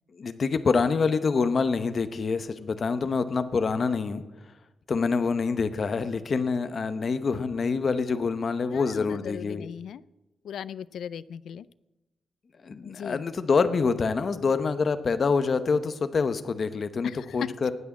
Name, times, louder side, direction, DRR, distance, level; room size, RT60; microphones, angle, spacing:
voice 1, 0.1-4.2 4.9-9.7 12.6-17.7, left 4 dB, 35° left, 11 dB, 0.8 m, -26 dB
voice 2, 8.7-10.0 10.4-11.7 12.8-13.2 17.0-17.4, left 8 dB, 75° left, 19 dB, 0.4 m, -38 dB
18.5 x 6.2 x 8.3 m, 1.0 s
wide cardioid pair, 175°, 0 cm